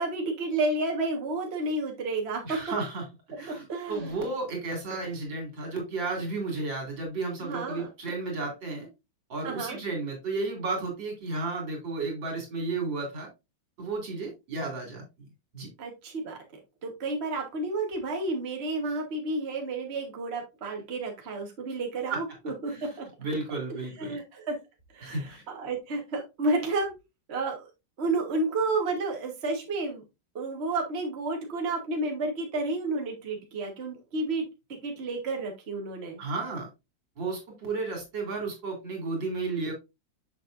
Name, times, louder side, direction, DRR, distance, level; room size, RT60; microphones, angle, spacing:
voice 1, 0.0-2.6 3.5-4.1 7.4-7.9 9.4-9.8 15.8-16.4 16.8-23.1 24.0-24.6 24.9-26.9 27.3-27.7 28.0-30.0 30.3-36.2, right 2 dB, 35° right, 1.5 m, -31 dB
voice 2, 2.4-3.1 3.4-8.9 9.3-13.3 13.8-15.0 15.5-15.7 22.1-22.2 22.7-22.9 23.2-24.2 25.0-25.4 36.2-36.7 37.2-39.7, right 3 dB, 75° right, 3.3 m, -33 dB
6.7 x 6.5 x 2.5 m
omnidirectional pair, 2.0 m